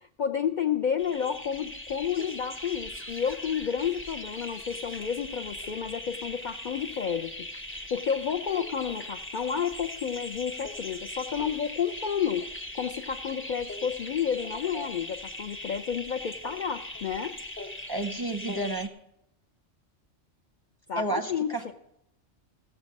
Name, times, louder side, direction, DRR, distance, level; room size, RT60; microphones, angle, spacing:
voice 1, 0.0-7.3 7.9-12.5 12.7-17.4 20.9-21.7, left 7 dB, 60° left, 5 dB, 0.5 m, -30 dB
sound 1, 1.0-18.9, left 1 dB, 15° left, 0.6 m, -40 dB
voice 2, 17.9-18.9 20.9-21.7, right 2 dB, 25° right, 6 dB, 0.6 m, -31 dB
16.0 x 7.1 x 5.2 m, 0.81 s
omnidirectional pair, 1.2 m